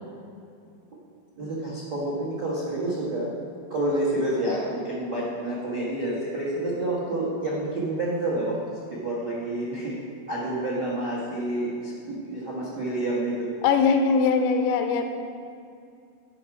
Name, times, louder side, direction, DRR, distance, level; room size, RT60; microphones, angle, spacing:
voice 1, 1.4-3.3 3.7-8.6 8.9-10.0 10.3-13.5, right 1 dB, 65° right, -6 dB, 1.0 m, -28 dB
voice 2, 13.6-15.0, left 5 dB, 85° left, 6 dB, 2.7 m, -21 dB
12.5 x 5.9 x 4.8 m, 2.4 s
omnidirectional pair, 5.2 m